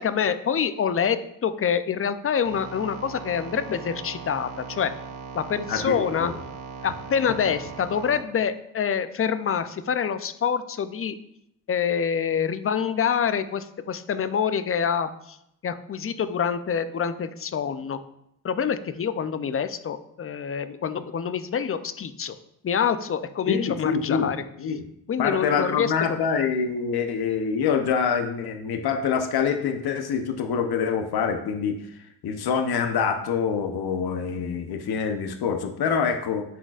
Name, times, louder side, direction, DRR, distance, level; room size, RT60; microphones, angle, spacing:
voice 1, 0.0-4.9 5.3-6.3 6.8-11.2 11.7-15.4 15.6-18.0 18.4-22.3 22.6-24.4 25.1-25.9, left 7 dB, 30° left, 12 dB, 0.5 m, -26 dB
sound 1, 2.4-8.2, right 5 dB, 65° right, 1.0 m, -39 dB
voice 2, 5.7-6.3 23.5-24.3 24.6-24.8 25.2-31.8 32.2-36.4, left 6 dB, 60° left, 6 dB, 0.9 m, -25 dB
10.0 x 3.9 x 2.5 m, 0.76 s
supercardioid pair, 60°, 43 cm